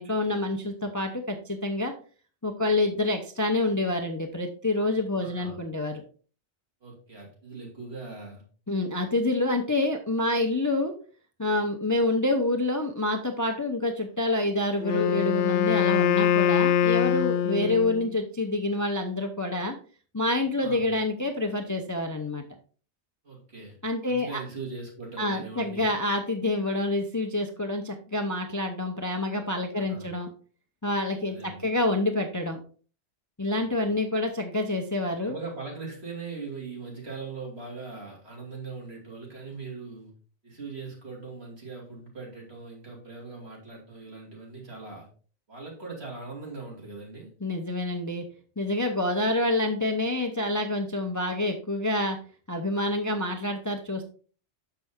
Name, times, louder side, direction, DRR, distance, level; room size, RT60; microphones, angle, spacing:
voice 1, 0.0-1.9 2.4-6.0 8.7-10.9 11.4-19.8 20.1-22.4 23.8-24.4 25.2-30.3 30.8-32.6 33.4-35.4 47.4-48.2 48.6-52.2 52.5-54.0, left 2 dB, 20° left, 0.6 m, -27 dB
voice 2, 5.2-5.6 6.8-8.4 17.6-17.7 20.6-20.9 23.2-23.8 24.0-25.9 29.7-30.1 31.3-31.7 33.5-33.9 35.2-40.1 40.4-45.1 45.5-47.3, right 4 dB, 60° right, 2.6 m, -40 dB
Wind instrument woodwind instrument, 14.8-18.1, left 8 dB, 60° left, 0.6 m, -23 dB
6.6 x 5.9 x 3.6 m
omnidirectional pair, 1.2 m